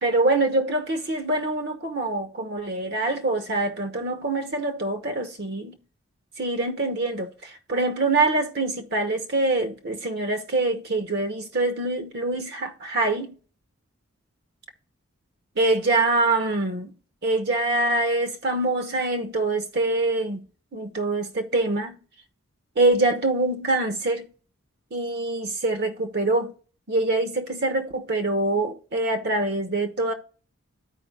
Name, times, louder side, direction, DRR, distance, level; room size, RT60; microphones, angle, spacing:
voice 1, 0.0-5.8 6.4-13.3 15.6-16.9 17.2-20.4 20.7-22.0 22.8-24.3 24.9-26.5 26.9-30.1, right 2 dB, 50° right, 0.9 m, -24 dB
13.5 x 4.8 x 2.4 m
head